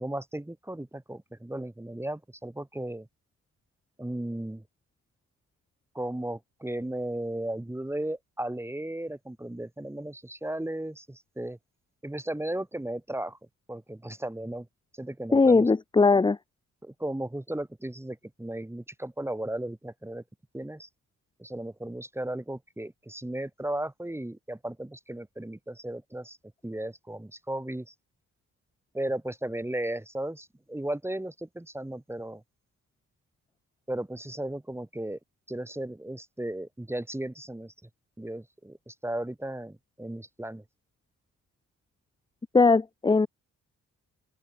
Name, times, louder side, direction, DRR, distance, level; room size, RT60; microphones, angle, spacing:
voice 1, 0.0-3.1 4.0-4.6 5.9-11.6 12.0-13.4 13.7-14.7 15.0-15.7 16.8-20.2 20.5-20.9 21.4-26.4 26.6-27.9 28.9-32.4 33.9-35.2 35.5-37.7 38.2-40.6, right 1 dB, 10° right, 1.3 m, -35 dB
voice 2, 15.3-16.4 42.5-43.3, left 4 dB, 15° left, 0.6 m, -20 dB
open air
supercardioid pair, 60°, 33 cm